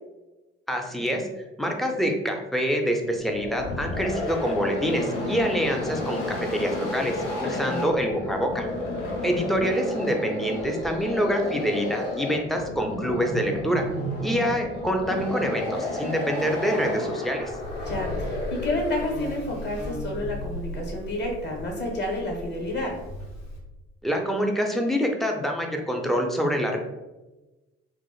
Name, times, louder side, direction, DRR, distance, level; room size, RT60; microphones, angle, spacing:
voice 1, 0.7-1.3 1.6-6.2 6.5-8.7 9.2-13.8 14.2-17.5 24.0-26.8, equal, ahead, 2 dB, 0.3 m, -26 dB
sound 1, 3.1-19.2, left 1 dB, 70° left, 0.6 m, -31 dB
voice 2, 7.4-7.9 17.8-22.9, left 1 dB, 35° left, -1 dB, 0.9 m, -30 dB
Buzz, 17.4-23.6, left 1 dB, 55° left, 1.2 m, -36 dB
2.9 x 2.4 x 2.3 m, 1.1 s
figure-of-eight pair, 45°, 30 cm